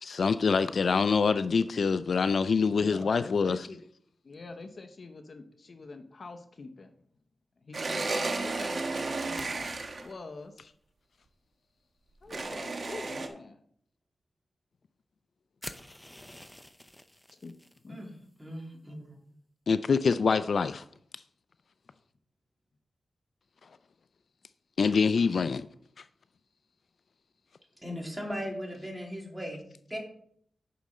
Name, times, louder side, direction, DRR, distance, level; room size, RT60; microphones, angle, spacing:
voice 1, 0.0-3.6 19.7-20.8 24.8-25.7, left 5 dB, 70° left, 13 dB, 0.4 m, -25 dB
voice 2, 2.8-3.8 4.2-6.9 7.6-9.5 10.0-10.7 12.2-13.6 17.3-17.6 17.8-18.1, left 3 dB, 50° left, 6 dB, 0.8 m, -45 dB
sound 1, 7.7-10.1 12.3-13.3, right 3 dB, 50° right, 1.2 m, -33 dB
sound 2, 15.6-17.8, left 1 dB, 10° left, 0.6 m, -47 dB
voice 3, 18.4-19.1 27.8-30.0, equal, 10° right, -1 dB, 2.9 m, -38 dB
10.0 x 6.2 x 4.3 m, 0.64 s
wide cardioid pair, 105°, 0 cm